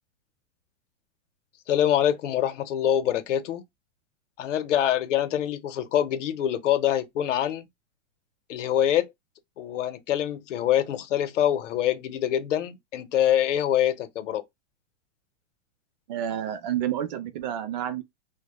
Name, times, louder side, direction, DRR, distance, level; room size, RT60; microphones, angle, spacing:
voice 1, 1.7-3.6 4.4-7.7 8.5-9.1 9.6-14.4, left 11 dB, 85° left, 0.7 m, -25 dB
voice 2, 16.1-18.0, right 10 dB, 40° right, 0.4 m, -29 dB
2.1 x 2.1 x 2.9 m
hypercardioid pair, 140°, 36 cm